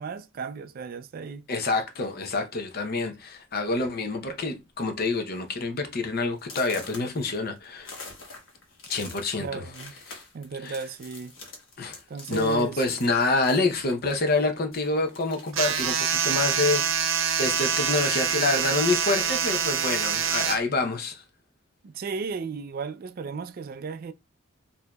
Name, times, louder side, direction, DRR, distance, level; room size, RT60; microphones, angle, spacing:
voice 1, 0.0-1.4 9.4-9.9 10.3-11.3 12.1-13.0 21.8-24.1, right 5 dB, 50° right, 0.3 m, -35 dB
voice 2, 1.5-7.9 8.9-9.6 10.1-10.2 10.6-10.8 11.8-12.0 12.3-21.2, left 3 dB, 50° left, 0.7 m, -27 dB
sound 1, 1.9-2.2 3.0-3.1 3.5-3.8 4.1-4.5 4.9-5.0 5.5-5.6 6.4-14.5 14.7-18.4 18.8-19.8, left 3 dB, 70° left, 1.2 m, -47 dB
sound 2, 15.5-20.6, right 7 dB, 85° right, 0.7 m, -25 dB
4.6 x 2.7 x 2.3 m
head